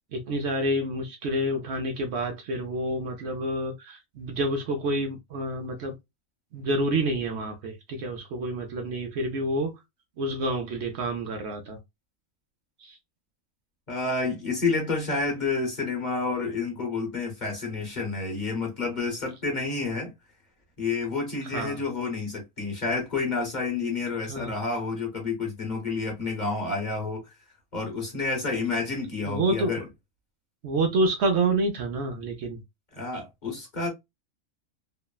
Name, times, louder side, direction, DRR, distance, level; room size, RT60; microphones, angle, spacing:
voice 1, 0.1-5.9 6.5-9.7 10.2-11.8 12.8-13.0 21.4-21.8 24.3-24.5 29.3-29.7 30.6-32.6, right 1 dB, 65° right, 0.8 m, -28 dB
voice 2, 13.9-20.1 20.8-27.3 27.7-29.8 32.9-33.9, left 4 dB, 40° left, 0.9 m, -29 dB
3.0 x 2.0 x 2.2 m
omnidirectional pair, 1.4 m